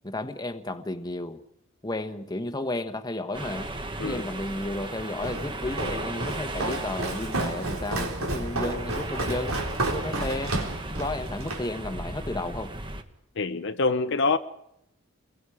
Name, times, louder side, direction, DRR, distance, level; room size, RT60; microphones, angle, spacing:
voice 1, 0.0-1.4 1.8-3.7 4.0-10.6 10.9-12.7, left 2 dB, 20° left, 1.2 m, -33 dB
sound 1, 3.3-13.0, right 1 dB, 25° right, 1.4 m, -36 dB
Walk footsteps, 5.2-11.7, right 2 dB, 80° right, 4.1 m, -31 dB
voice 2, 13.4-14.4, left 3 dB, 55° left, 0.7 m, -25 dB
29.5 x 22.0 x 4.9 m
head